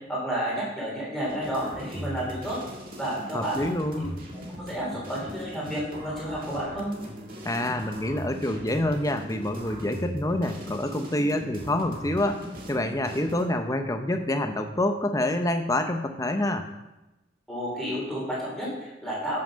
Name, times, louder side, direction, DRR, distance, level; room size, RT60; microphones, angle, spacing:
voice 1, 0.1-2.6 3.0-3.7 4.6-6.9 17.5-19.4, right 1 dB, ahead, -7 dB, 3.6 m, -31 dB
sound 1, 1.2-13.4, equal, 50° right, 1.8 m, -39 dB
voice 2, 3.3-4.1 7.4-12.4 12.7-16.7, left 1 dB, 20° left, 6 dB, 0.7 m, -27 dB
8.9 x 5.8 x 6.4 m, 1.0 s
head